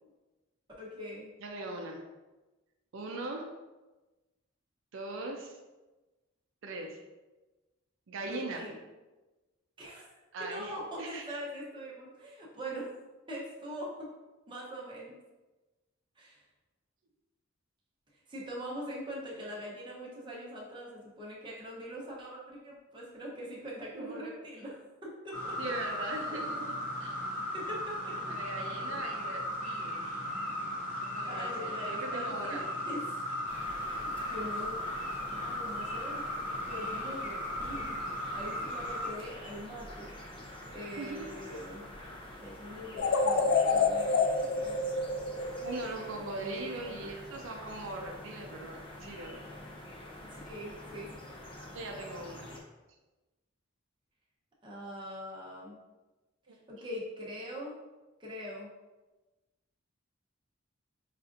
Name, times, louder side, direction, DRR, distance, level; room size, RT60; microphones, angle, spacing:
voice 1, 0.8-1.3 8.2-8.8 9.8-10.1 10.4-12.9 13.3-14.1 14.5-15.1 16.2-16.4 18.3-25.7 27.5-28.2 28.9-29.0 31.3-33.2 33.9-34.8 35.3-36.2 36.7-38.0 38.3-40.1 40.7-41.8 42.4-44.8 46.1-47.1 50.3-51.2 54.6-55.8 56.7-57.8 58.2-58.7, equal, 25° right, -5 dB, 0.8 m, -43 dB
voice 2, 1.4-2.1 2.9-3.5 4.9-5.6 6.6-7.0 8.1-8.7 10.3-11.3 19.3-19.5 23.9-24.3 25.6-27.2 28.1-30.0 31.0-32.7 41.0-41.4 45.6-49.5 51.5-52.5 56.5-56.6, right 2 dB, 75° right, 2 dB, 0.4 m, -40 dB
sound 1, 25.3-39.1, left 1 dB, 40° left, 1.1 m, -36 dB
sound 2, 33.5-52.6, left 1 dB, 25° left, 0.5 m, -47 dB
sound 3, 43.0-46.1, left 4 dB, 85° left, 0.4 m, -28 dB
5.5 x 2.4 x 2.5 m, 1.1 s
head